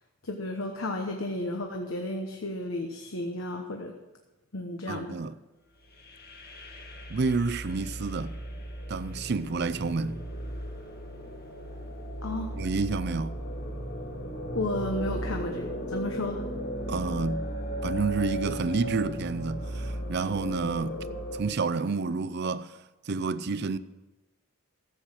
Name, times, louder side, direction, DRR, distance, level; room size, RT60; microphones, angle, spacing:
voice 1, 0.2-3.9 4.5-5.2 12.2-12.6 14.5-16.5, left 1 dB, 70° left, 1.1 m, -33 dB
voice 2, 4.9-5.3 7.1-8.3 8.9-10.2 12.5-13.3 16.9-17.5 17.8-21.0 21.3-22.7 23.1-23.8, right 4 dB, 50° right, 0.5 m, -29 dB
sound 1, 5.8-21.4, equal, 45° left, 1.8 m, -36 dB
14.0 x 7.9 x 6.5 m
head